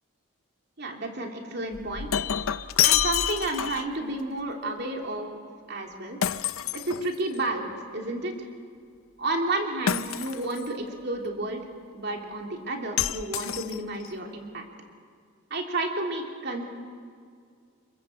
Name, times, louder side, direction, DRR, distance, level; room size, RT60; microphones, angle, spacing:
voice 1, 0.8-2.2 2.8-5.4 5.7-6.2 6.7-8.5 9.2-11.6 11.9-14.6 15.5-16.6, right 2 dB, 50° right, 2 dB, 3.2 m, -31 dB
Shatter, 1.7-4.0 6.2-7.5 9.9-10.7 13.0-14.1, left 10 dB, 80° left, 0.6 m, -27 dB
27.0 x 22.5 x 7.8 m, 2.2 s
head